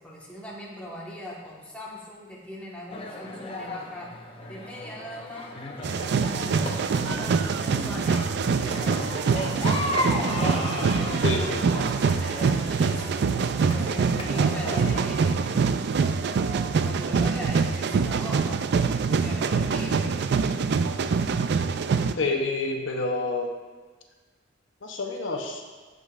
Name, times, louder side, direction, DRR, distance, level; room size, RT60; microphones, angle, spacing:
voice 1, 0.0-4.1 4.5-5.5 6.2-10.2 11.9-13.4 13.7-15.7 16.8-18.7 19.1-20.1, equal, 5° left, -5 dB, 1.4 m, -41 dB
sound 1, 2.9-15.0, left 1 dB, 30° left, 0.7 m, -35 dB
sound 2, 5.8-22.1, right 5 dB, 60° right, 0.3 m, -25 dB
voice 2, 11.2-11.7 22.2-23.5 24.8-25.6, left 3 dB, 90° left, 3 dB, 0.8 m, -28 dB
15.0 x 5.2 x 2.5 m, 1.4 s
head